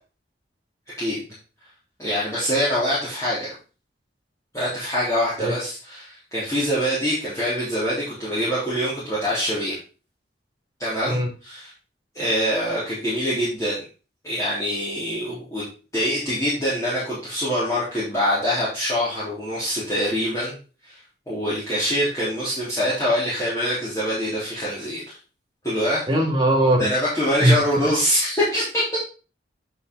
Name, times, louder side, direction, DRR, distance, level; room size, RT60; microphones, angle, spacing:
voice 1, 2.0-3.5 4.5-9.8 10.8-11.7 12.1-13.8 14.2-15.6 15.9-20.6 20.9-21.0 21.3-25.2 25.6-26.1 26.8-29.0, equal, 15° left, -11 dB, 3.5 m, -24 dB
voice 2, 26.1-26.9 27.4-27.9, right 1 dB, 25° right, 0 dB, 2.6 m, -20 dB
9.4 x 5.9 x 4.0 m, 0.34 s
head